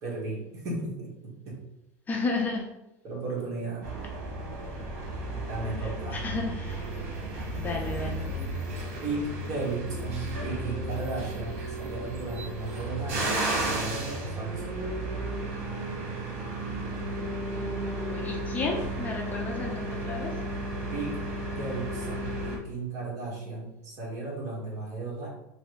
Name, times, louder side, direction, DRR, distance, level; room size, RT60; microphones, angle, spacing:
voice 1, 0.0-1.6 3.0-3.9 5.5-6.2 9.0-13.3 13.6-14.6 20.9-25.3, right 3 dB, 45° right, -4 dB, 1.4 m, -35 dB
voice 2, 2.1-2.7 5.8-6.9 7.6-8.3 17.5-20.3, left 3 dB, 20° left, 0 dB, 0.5 m, -33 dB
sound 1, 3.8-22.6, right 1 dB, 85° right, 1.0 m, -33 dB
3.2 x 2.6 x 3.1 m, 0.89 s
supercardioid pair, 135°, 8 cm